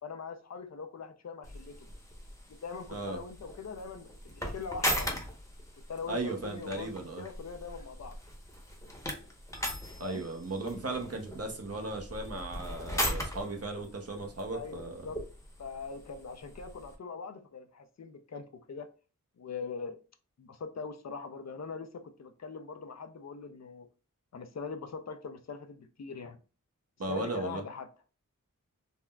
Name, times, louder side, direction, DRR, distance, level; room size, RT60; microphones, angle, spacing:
voice 1, 0.0-1.9 2.6-5.2 5.9-8.2 10.0-10.3 14.5-15.2 15.6-18.9 19.4-20.0 20.4-23.9 24.3-26.4 27.1-27.9, left 5 dB, 50° left, 0.5 m, -42 dB
sound 1, 1.4-17.0, equal, 10° left, 0.8 m, -39 dB
voice 2, 6.1-7.2 10.0-15.0 27.0-27.6, right 2 dB, 45° right, 0.7 m, -36 dB
3.6 x 2.1 x 2.2 m
wide cardioid pair, 45°, 34 cm